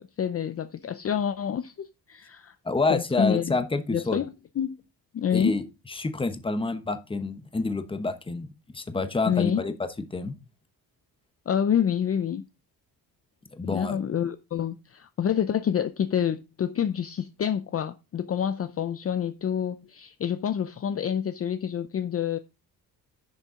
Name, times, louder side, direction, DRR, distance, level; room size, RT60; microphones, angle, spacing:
voice 1, 0.0-2.5 2.9-3.6 3.9-4.8 5.1-5.6 9.3-9.6 11.5-12.5 13.6-22.4, left 8 dB, 35° left, 0.6 m, -28 dB
voice 2, 2.6-4.2 5.3-5.6 5.9-8.5 8.7-9.7 10.1-10.3 13.5-14.0, left 3 dB, 15° left, 1.0 m, -28 dB
11.0 x 6.7 x 3.7 m
cardioid pair, 135°, 40 cm